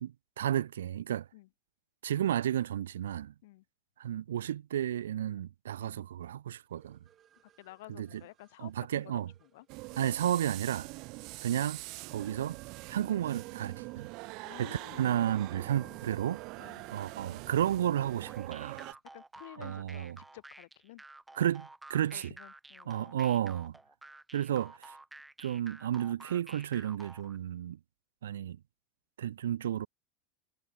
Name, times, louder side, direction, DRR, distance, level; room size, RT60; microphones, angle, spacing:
voice 1, 0.0-1.3 2.0-3.3 4.0-7.0 8.0-8.1 8.6-9.3 10.0-10.9 11.4-11.8 12.1-12.6 12.9-14.1 14.6-16.4 16.9-18.8 19.6-20.2 21.3-22.3 22.9-23.7 24.3-24.9 25.4-27.8 28.2-28.6 29.2-29.9, right 11 dB, 80° right, 0.4 m, -32 dB
sound 1, 6.8-18.7, right 10 dB, 35° right, 6.7 m, -62 dB
voice 2, 7.6-9.7 9.9-10.0 14.4-15.2 15.7-16.0 16.6-16.9 19.1-21.0 22.1-23.1, left 19 dB, 70° left, 2.4 m, -52 dB
sound 2, 9.7-18.9, right 26 dB, 55° right, 0.9 m, -44 dB
sound 3, 18.2-27.4, right 2 dB, 10° right, 3.5 m, -51 dB
hypercardioid pair, 95°, 0 cm